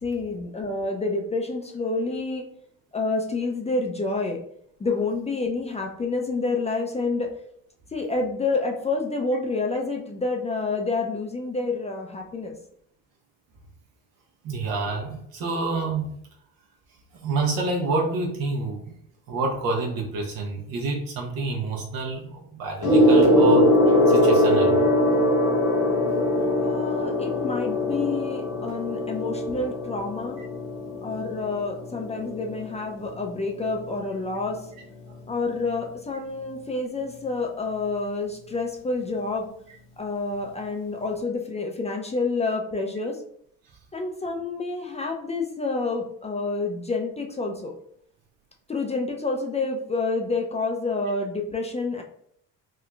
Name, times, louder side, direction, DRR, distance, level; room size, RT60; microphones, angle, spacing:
voice 1, 0.0-2.4 2.9-4.4 4.8-7.3 7.9-12.5 26.6-30.4 31.0-34.6 35.3-39.5 40.0-43.2 43.9-47.7 48.7-52.0, left 3 dB, 20° left, 1 dB, 0.4 m, -28 dB
voice 2, 14.4-16.1 17.2-19.0 19.3-23.7 24.1-24.8 30.4-30.5, right 3 dB, 70° right, 0 dB, 0.9 m, -28 dB
Gong, 22.8-32.6 33.5-33.8, left 1 dB, 85° left, 1.4 m, -21 dB
3.6 x 2.3 x 2.3 m, 0.69 s
hypercardioid pair, 65°, 36 cm